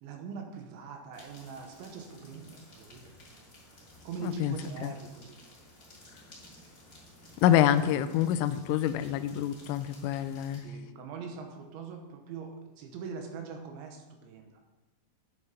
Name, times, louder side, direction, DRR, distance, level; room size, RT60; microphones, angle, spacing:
voice 1, 0.0-3.1 4.0-5.4 10.5-12.5 12.8-14.6, right 5 dB, 75° right, 3 dB, 3.3 m, -42 dB
sound 1, 1.1-10.6, left 1 dB, 25° left, 2.1 m, -54 dB
voice 2, 4.2-4.6 4.8-4.9 7.4-10.6, left 11 dB, 85° left, 11 dB, 3.1 m, -26 dB
11.0 x 8.5 x 5.3 m, 1.2 s
omnidirectional pair, 5.7 m